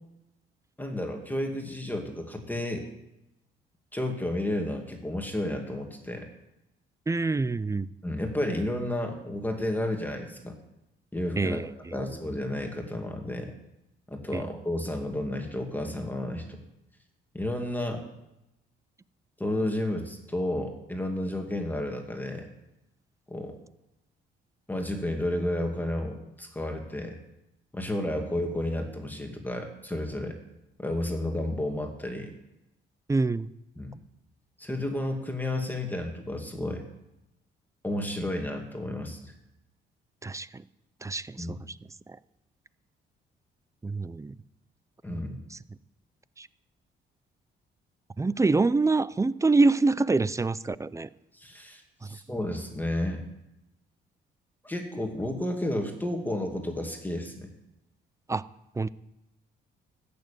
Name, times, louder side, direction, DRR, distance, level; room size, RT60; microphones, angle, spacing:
voice 1, 0.8-2.8 3.9-6.3 8.0-10.6 11.1-13.5 14.1-16.4 17.3-18.0 19.4-22.5 23.3-23.6 24.7-27.2 27.7-30.4 30.8-32.3 33.8-33.9 34.6-36.9 37.8-39.3 41.4-41.6 45.0-45.4 51.3-53.3 54.6-57.5, left 1 dB, 10° left, 3 dB, 2.2 m, -32 dB
voice 2, 7.1-7.9 11.4-11.7 12.0-12.1 14.3-14.4 33.1-33.5 40.2-40.6 41.0-41.8 42.1-42.2 43.8-44.3 45.1-45.2 45.5-45.6 46.4-46.5 48.2-51.1 52.0-52.1 58.3-58.5 58.8-58.9, right 3 dB, 15° right, 18 dB, 0.5 m, -26 dB
14.0 x 6.9 x 9.1 m, 0.91 s
cardioid pair, 90°, 20 cm